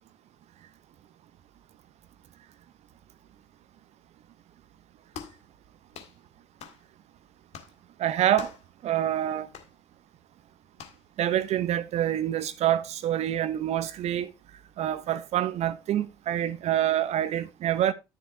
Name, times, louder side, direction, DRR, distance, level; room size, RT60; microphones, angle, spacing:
sound 1, 5.1-5.4 5.9-6.2 6.6-6.8 7.5-7.8 8.4-8.7 9.5-9.7 10.8-11.0, left 7 dB, 50° left, 1.9 m, -43 dB
voice 1, 8.0-8.5 8.8-9.5 11.2-14.3 14.8-17.9, right 11 dB, 50° right, 0.9 m, -26 dB
10.5 x 6.9 x 3.3 m
figure-of-eight pair, 60°, 14 cm